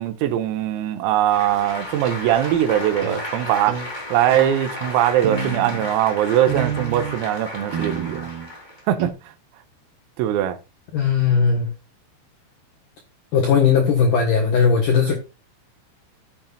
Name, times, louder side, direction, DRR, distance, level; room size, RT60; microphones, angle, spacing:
voice 1, 0.0-3.8 4.1-8.3 8.9-9.1 10.2-10.6, right 11 dB, 90° right, 3.8 m, -21 dB
Applause, 1.2-8.9, left 1 dB, 15° left, 2.1 m, -34 dB
sound 1, 3.0-3.2 3.7-3.9 4.3-4.6 5.2-5.9 6.5-7.2 7.7-8.5 9.0-9.1, right 8 dB, 60° right, 3.9 m, -28 dB
voice 2, 10.9-11.7 13.3-15.1, left 6 dB, 75° left, 1.9 m, -18 dB
15.0 x 7.2 x 2.4 m
omnidirectional pair, 5.8 m